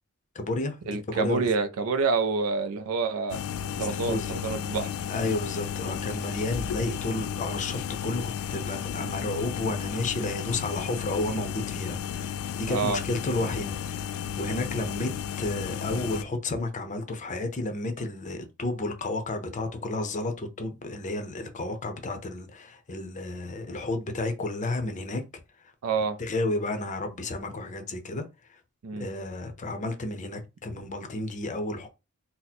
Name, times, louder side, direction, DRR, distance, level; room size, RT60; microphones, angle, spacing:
voice 1, 0.3-1.5 3.8-4.3 5.1-8.2 8.5-15.1 15.4-25.2 26.2-28.2 29.0-31.9, left 2 dB, 35° left, 0.6 m, -32 dB
voice 2, 0.9-3.4 3.8-4.9 12.7-13.0 25.8-26.2 28.8-29.1, right 4 dB, 70° right, 0.4 m, -27 dB
sound 1, 3.3-16.2, left 8 dB, 75° left, 0.3 m, -33 dB
2.8 x 2.0 x 4.0 m
head